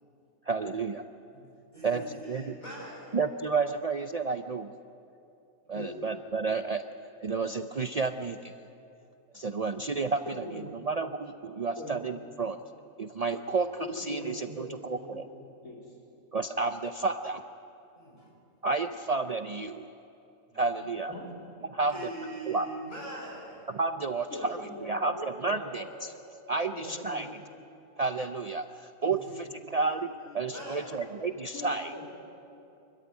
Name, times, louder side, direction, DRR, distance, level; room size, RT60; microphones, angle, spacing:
voice 1, 0.5-1.0 1.8-2.6 3.1-4.7 5.7-6.8 7.2-8.5 9.3-12.6 13.0-15.3 16.3-17.5 18.6-19.9 20.5-21.1 21.7-22.1 22.5-22.7 23.7-26.1 26.5-27.4 28.0-31.9, right 4 dB, 85° right, 8 dB, 0.3 m, -31 dB
voice 2, 1.7-3.2 18.0-18.3 20.5-20.6 21.9-23.7 29.2-30.1 30.5-31.0, right 1 dB, 30° left, -4 dB, 7.8 m, -42 dB
voice 3, 10.3-10.7 11.8-12.0 13.8-15.8 21.1-21.3 24.3-25.9 26.5-27.3 31.5-32.2, left 1 dB, 75° left, -3 dB, 4.2 m, -42 dB
25.5 x 14.0 x 9.6 m, 2.7 s
omnidirectional pair, 1.5 m